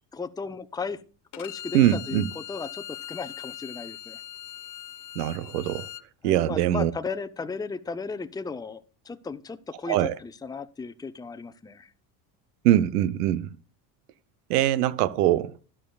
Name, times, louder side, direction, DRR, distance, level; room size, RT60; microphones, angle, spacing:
voice 1, 0.1-1.0 1.4-4.2 6.2-11.9, left 4 dB, 10° left, 0.7 m, -35 dB
Bowed string instrument, 1.3-6.0, left 12 dB, 40° left, 0.8 m, -40 dB
voice 2, 1.7-2.3 5.2-5.9 6.2-6.9 9.9-10.1 12.6-13.5 14.5-15.5, right 13 dB, 90° right, 0.9 m, -22 dB
12.0 x 11.0 x 2.3 m
supercardioid pair, 90°, 46 cm